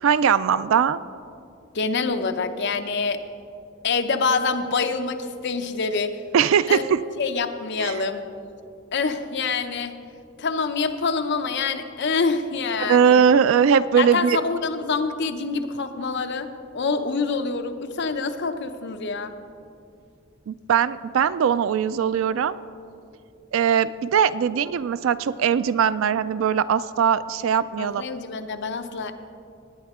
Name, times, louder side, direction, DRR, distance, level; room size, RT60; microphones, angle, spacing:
voice 1, 0.0-1.0 6.3-7.0 7.8-7.9 12.8-14.4 20.5-22.6 23.5-28.0, right 7 dB, 70° right, 16 dB, 0.3 m, -20 dB
voice 2, 1.7-3.2 3.8-6.2 6.7-6.8 7.2-8.2 8.9-9.9 10.4-13.3 14.0-16.5 16.7-19.3 27.8-29.1, left 4 dB, 55° left, 8 dB, 0.6 m, -26 dB
19.0 x 8.9 x 3.6 m, 2.5 s
head